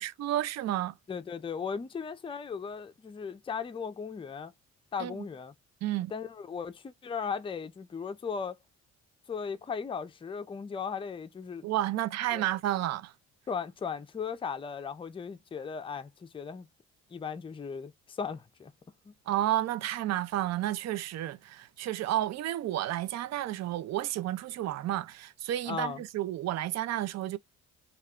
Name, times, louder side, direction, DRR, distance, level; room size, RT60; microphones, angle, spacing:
voice 1, 0.0-1.0 5.0-5.2 5.8-6.1 11.6-13.1 19.3-27.4, right 13 dB, 60° right, 0.5 m, -31 dB
voice 2, 1.1-4.5 4.9-5.5 6.1-8.6 9.3-11.7 12.3-12.4 13.5-16.7 17.1-18.7 19.1-19.2 25.7-26.0, left 6 dB, 20° left, 0.4 m, -37 dB
2.4 x 2.1 x 3.5 m
cardioid pair, 90°, 30 cm